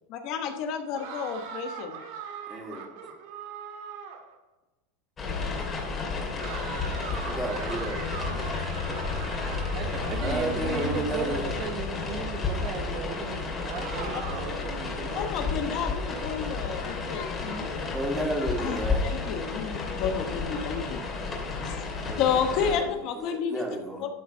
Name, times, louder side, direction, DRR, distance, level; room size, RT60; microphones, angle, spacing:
voice 1, 0.1-2.0 14.1-14.2 15.1-17.8 18.4-21.0 21.6-21.8 22.2-23.7 24.0-24.1, left 7 dB, 50° left, 5 dB, 1.1 m, -31 dB
sound 1, 0.9-4.3 6.4-11.7 13.6-14.7, right 6 dB, 65° right, 2.0 m, -41 dB
voice 2, 2.5-2.8 7.2-8.0 10.1-11.4 17.9-19.1 22.0-22.9 23.2-24.0, right 1 dB, 5° right, -1 dB, 2.5 m, -32 dB
sound 2, 5.2-22.8, left 4 dB, 25° left, 2.3 m, -32 dB
sound 3, 7.6-13.5, left 4 dB, 70° left, 3.0 m, -38 dB
voice 3, 9.7-15.3, right 7 dB, 45° right, 7 dB, 1.0 m, -36 dB
12.0 x 4.2 x 5.4 m, 1.1 s
supercardioid pair, 130°, 0 cm